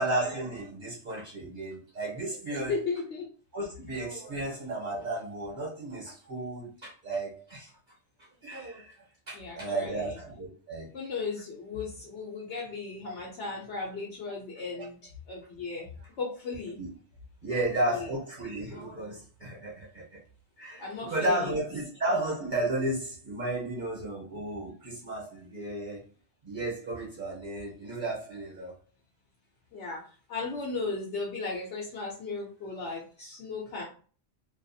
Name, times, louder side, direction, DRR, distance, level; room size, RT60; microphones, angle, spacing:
voice 1, 0.0-2.7 3.5-7.7 8.4-9.0 9.3-10.9 16.8-16.9 17.4-20.0 20.6-26.0 26.4-28.7, right 2 dB, 45° right, -3 dB, 0.9 m, -33 dB
voice 2, 2.5-3.3 9.3-10.2 10.9-15.9 16.2-16.8 17.5-18.1 20.8-21.5 29.7-30.0 30.3-33.8, left 4 dB, 80° left, -3 dB, 1.0 m, -36 dB
2.5 x 2.3 x 2.6 m, 0.40 s
omnidirectional pair, 1.2 m